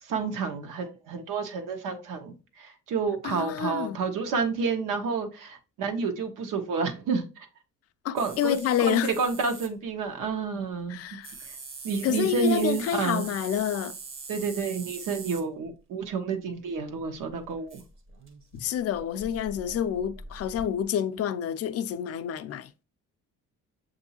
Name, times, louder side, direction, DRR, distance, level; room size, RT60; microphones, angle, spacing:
voice 1, 0.0-7.5 8.1-11.0 11.5-11.6 11.8-13.3 14.3-17.8, right 5 dB, 80° right, 1.0 m, -30 dB
voice 2, 3.2-4.0 8.0-9.1 10.9-11.3 12.0-14.0 18.5-22.7, left 9 dB, 50° left, 0.4 m, -28 dB
sound 1, 8.2-9.7 11.2-15.4 16.7-16.8 17.0-20.8, right 4 dB, 40° right, 0.8 m, -43 dB
6.9 x 2.6 x 2.8 m
cardioid pair, 150°, 32 cm